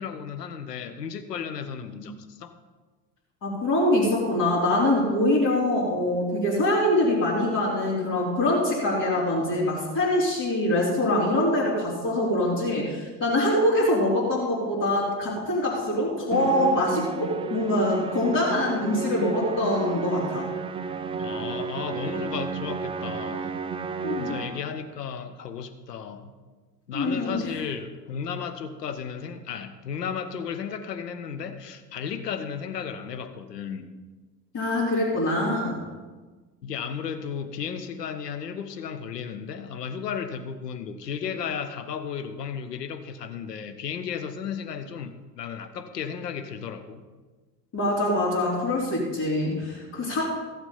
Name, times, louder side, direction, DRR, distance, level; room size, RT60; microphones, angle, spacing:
voice 1, 0.0-2.6 21.2-23.5 24.2-26.3 26.9-33.9 36.6-47.0, left 7 dB, 75° left, 8 dB, 1.0 m, -34 dB
voice 2, 3.4-20.5 24.0-24.4 26.9-27.4 34.5-35.8 47.7-50.2, left 1 dB, 40° left, -8 dB, 3.7 m, -24 dB
Musical instrument, 16.3-24.8, right 5 dB, 10° right, 0.4 m, -32 dB
15.0 x 7.2 x 5.6 m, 1.3 s
figure-of-eight pair, 65°, 49 cm